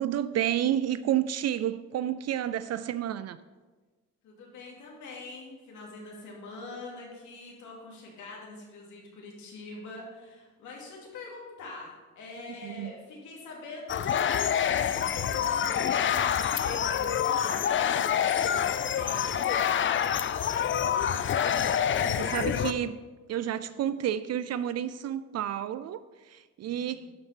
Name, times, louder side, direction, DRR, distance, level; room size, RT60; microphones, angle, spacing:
voice 1, 0.0-3.4 12.4-12.9 22.0-23.0 23.3-27.1, right 11 dB, 55° right, 14 dB, 0.4 m, -30 dB
voice 2, 4.2-19.5 26.6-27.1, left 3 dB, 80° left, -2 dB, 2.6 m, -44 dB
sound 1, 13.9-22.7, left 9 dB, 40° left, 0.5 m, -27 dB
11.0 x 4.5 x 5.7 m, 1.3 s
cardioid pair, 90°, 30 cm